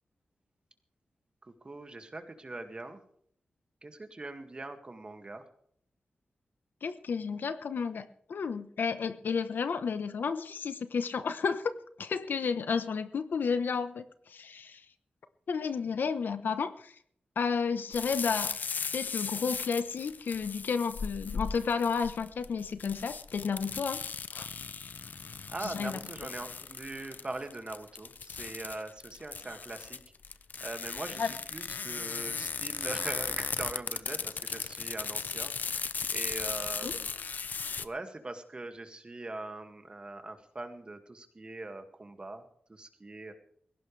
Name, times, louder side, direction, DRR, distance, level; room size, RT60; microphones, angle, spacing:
voice 1, 1.4-3.0 3.8-5.4 25.5-30.0 30.6-37.1 37.8-42.4 42.7-43.3, right 2 dB, 30° right, 6 dB, 2.1 m, -42 dB
voice 2, 6.8-11.7 12.0-14.8 15.5-16.9 17.4-18.5 18.9-24.0 24.3-24.5 25.6-26.0 31.2-31.3 36.8-37.0, left 5 dB, 80° left, 11 dB, 1.1 m, -32 dB
sound 1, 17.9-37.9, left 5 dB, 65° left, 0.7 m, -37 dB
21.0 x 17.0 x 3.4 m, 0.64 s
wide cardioid pair, 110°, 3 cm